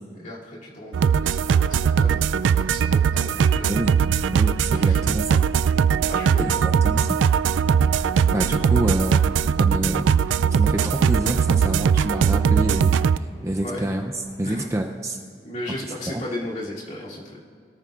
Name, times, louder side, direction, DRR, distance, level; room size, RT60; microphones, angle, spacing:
voice 1, 0.1-3.7 4.7-5.2 6.1-6.6 13.6-13.9 14.4-14.7 15.4-17.4, left 1 dB, 45° left, -5 dB, 2.7 m, -35 dB
sound 1, 0.9-13.2, right 7 dB, 85° right, 0.3 m, -20 dB
voice 2, 4.3-5.2 6.4-7.2 8.3-9.3 9.6-15.2 16.1-16.2, right 1 dB, 15° right, 3 dB, 0.5 m, -27 dB
sound 2, 8.1-14.4, equal, 20° left, 1.0 m, -47 dB
22.0 x 13.5 x 2.5 m, 2.3 s
head